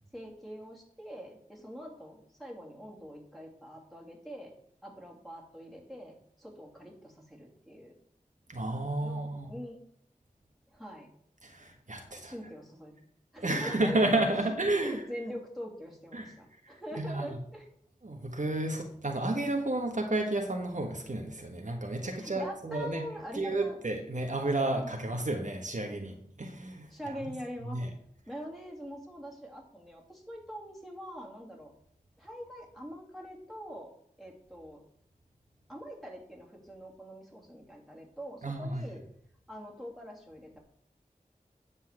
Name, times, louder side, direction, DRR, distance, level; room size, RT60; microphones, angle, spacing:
voice 1, 0.1-4.5 4.8-7.9 9.0-9.8 10.7-11.1 12.1-12.9 13.3-14.2 14.7-17.7 22.0-23.8 24.8-25.0 26.9-27.8 28.3-31.7 32.2-33.9 34.2-34.8 35.7-39.0 39.5-40.6, equal, ahead, -2 dB, 2.8 m, -43 dB
voice 2, 8.5-9.5 11.4-12.3 13.4-15.0 16.1-16.3 17.0-17.4 18.0-23.0 23.3-26.9 27.2-27.3 27.7-27.9 38.4-38.8, right 2 dB, 60° right, 3 dB, 1.4 m, -31 dB
9.7 x 4.3 x 7.3 m, 0.66 s
wide cardioid pair, 55°, 15 cm